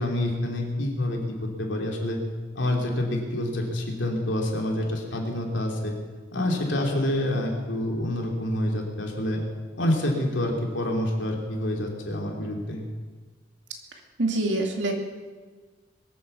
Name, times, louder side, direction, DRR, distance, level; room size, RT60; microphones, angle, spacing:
voice 1, 0.0-2.2 2.5-5.9 6.3-9.4 9.7-12.9, left 1 dB, 75° left, 0 dB, 3.2 m, -27 dB
voice 2, 14.2-14.9, right 2 dB, 70° right, 2 dB, 2.5 m, -25 dB
22.5 x 8.7 x 7.1 m, 1.4 s
head